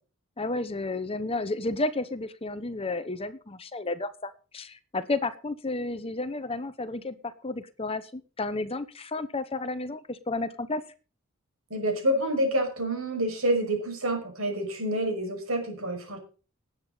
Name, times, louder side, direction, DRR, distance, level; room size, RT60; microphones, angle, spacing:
voice 1, 0.4-10.8, left 2 dB, 25° left, 13 dB, 0.9 m, -32 dB
voice 2, 11.7-16.2, right 1 dB, 80° right, 4 dB, 5.7 m, -28 dB
19.0 x 9.0 x 4.0 m, 0.36 s
head